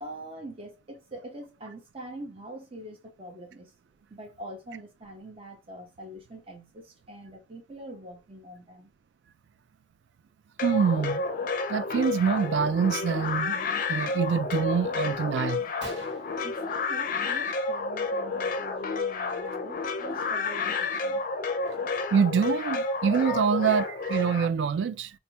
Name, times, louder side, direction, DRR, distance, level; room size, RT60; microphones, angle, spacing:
voice 1, 0.0-3.7 4.1-8.9 16.4-21.2, right 1 dB, 35° right, 0.9 m, -44 dB
sound 1, 10.6-24.5, left 4 dB, 50° left, 0.5 m, -30 dB
voice 2, 10.6-11.3 11.7-15.6 22.1-25.1, right 6 dB, 75° right, 0.3 m, -25 dB
Gunshot gunfire, 15.8-17.4 17.7-18.1 18.3-18.6 19.4-19.6 20.1-20.2 20.6-22.2, right 2 dB, 90° right, 1.0 m, -47 dB
3.2 x 2.1 x 2.8 m
head